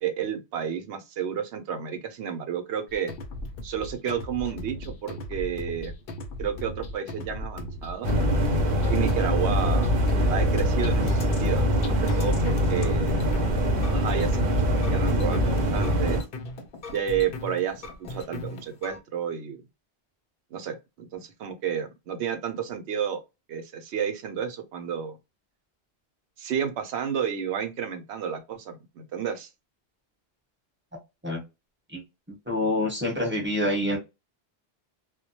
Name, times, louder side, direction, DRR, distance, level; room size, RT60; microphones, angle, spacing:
voice 1, 0.0-3.1 3.6-5.9 6.4-8.1 8.9-9.9 10.3-13.2 13.9-16.2 16.9-19.6 20.5-23.2 23.5-25.2 26.4-29.5, right 8 dB, 85° right, 0.9 m, -31 dB
sound 1, 2.9-19.0, left 1 dB, 65° left, 0.7 m, -38 dB
sound 2, 8.0-16.2, equal, 55° right, 0.8 m, -23 dB
voice 2, 32.5-34.0, left 1 dB, 10° right, 1.0 m, -26 dB
2.2 x 2.1 x 2.7 m
omnidirectional pair, 1.1 m